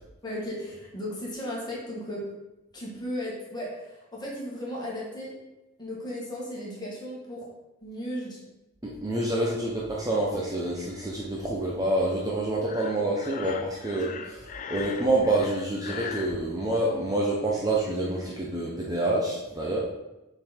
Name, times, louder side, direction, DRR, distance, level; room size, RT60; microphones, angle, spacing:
voice 1, 0.2-2.2 2.7-5.3 5.8-7.5 7.8-8.4 9.4-9.5 14.0-14.2, equal, 20° left, -5 dB, 1.9 m, -35 dB
voice 2, 8.8-19.8, right 1 dB, 15° right, -4 dB, 0.7 m, -27 dB
Breathing, 12.6-16.4, left 6 dB, 35° left, 0.3 m, -39 dB
7.0 x 4.0 x 4.3 m, 0.98 s
head